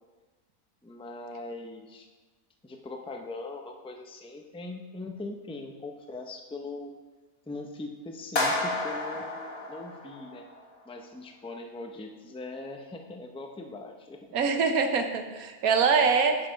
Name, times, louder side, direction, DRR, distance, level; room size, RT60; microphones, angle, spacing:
voice 1, 0.8-2.1 2.6-6.9 7.5-9.4 9.7-10.5 10.9-14.3, left 2 dB, 5° left, 3 dB, 0.4 m, -41 dB
sound 1, 8.4-10.6, left 2 dB, 45° left, 2.0 m, -31 dB
voice 2, 14.3-16.4, right 5 dB, 75° right, 6 dB, 1.3 m, -24 dB
9.5 x 5.8 x 5.1 m, 1.2 s
omnidirectional pair, 1.5 m